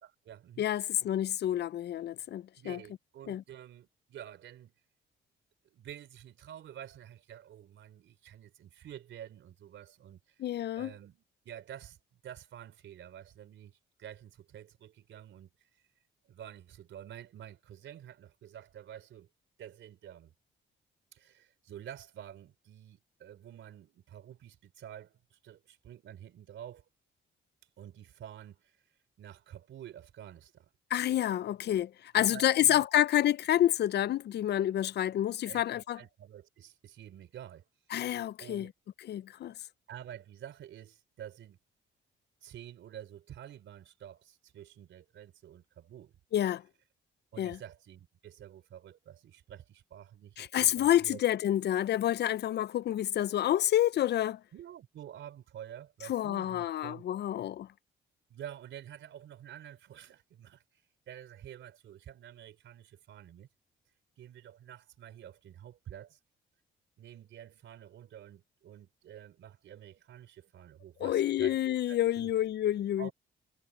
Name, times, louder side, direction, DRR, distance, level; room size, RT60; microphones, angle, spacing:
voice 1, 0.0-0.9 2.6-4.7 5.7-10.2 10.7-12.0 12.2-15.5 16.3-19.3 19.6-20.3 21.1-26.8 27.8-28.8 29.2-30.7 32.1-32.8 35.4-37.6 38.4-38.7 39.9-41.6 42.4-46.1 47.3-51.2 54.5-57.0 58.3-60.6 61.1-63.5 64.2-66.2 67.0-71.6 71.9-72.3 73.0-73.1, right 10 dB, 70° right, 3.7 m, -49 dB
voice 2, 0.6-2.8 3.3-3.4 10.4-10.9 30.9-36.0 37.9-38.7 39.1-39.5 46.3-46.6 47.4-47.6 50.4-54.4 56.1-57.7 71.0-73.1, left 12 dB, 60° left, 0.5 m, -28 dB
cardioid pair, 90°, 20 cm